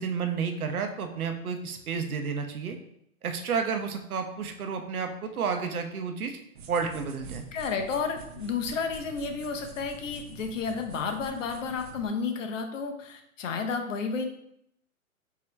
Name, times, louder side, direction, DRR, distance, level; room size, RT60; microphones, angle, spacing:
voice 1, 0.0-2.8 3.2-6.4 6.7-7.4, right 5 dB, 85° right, 5 dB, 0.8 m, -31 dB
sound 1, 6.5-12.1, right 4 dB, 40° right, 0.4 m, -46 dB
voice 2, 7.5-14.3, left 5 dB, 60° left, 5 dB, 0.9 m, -31 dB
4.6 x 2.9 x 3.3 m, 0.75 s
hypercardioid pair, 145°, 42 cm